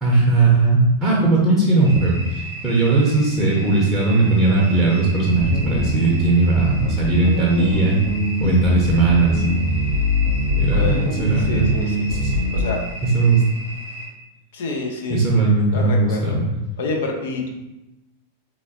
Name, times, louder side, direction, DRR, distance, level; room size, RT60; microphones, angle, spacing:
voice 1, 0.0-8.0 8.4-9.4 10.5-11.7 12.1-12.3 13.0-13.4 15.1-16.5, right 3 dB, 10° right, -6 dB, 0.8 m, -18 dB
sound 1, 1.8-14.1, right 2 dB, 85° left, 1.4 m, -36 dB
sound 2, 5.4-12.8, left 1 dB, 55° right, 0.6 m, -22 dB
voice 2, 10.7-11.1 11.4-12.1 12.5-12.8 14.5-15.4 15.7-16.4 16.8-17.5, left 3 dB, 55° left, 1 dB, 0.6 m, -28 dB
3.8 x 2.9 x 2.8 m, 0.97 s
figure-of-eight pair, 90°, 0 cm